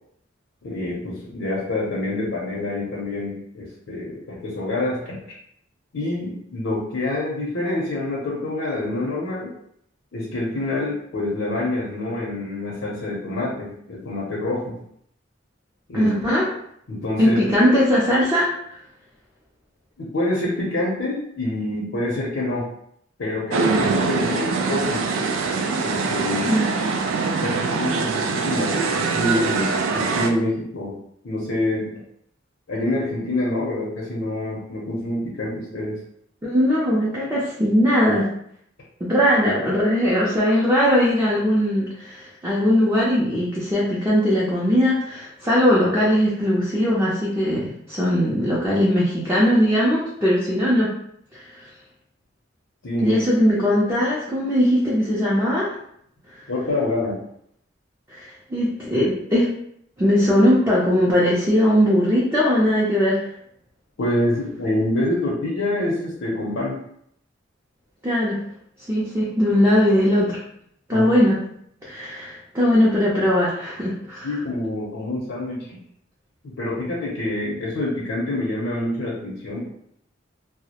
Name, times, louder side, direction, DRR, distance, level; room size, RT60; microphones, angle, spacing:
voice 1, 0.6-5.2 5.9-9.5 10.1-14.8 15.9-16.1 16.9-17.4 20.0-22.7 23.2-25.0 25.8-26.5 27.4-31.0 31.2-31.9 32.7-36.0 52.8-53.2 56.5-57.2 64.0-66.8 70.9-71.1 74.2-75.8 76.4-79.7, left 1 dB, 75° left, -5 dB, 0.6 m, -26 dB
voice 2, 15.9-16.5 17.2-18.5 26.4-26.7 36.4-38.3 39.0-50.9 51.3-51.7 53.0-55.7 58.1-59.5 60.0-63.2 68.0-68.4 68.9-70.4 70.9-71.4 71.8-74.3, equal, 15° right, -7 dB, 0.4 m, -19 dB
sound 1, 23.5-30.3, right 4 dB, 80° right, 0.3 m, -23 dB
2.3 x 2.0 x 2.8 m, 0.71 s
head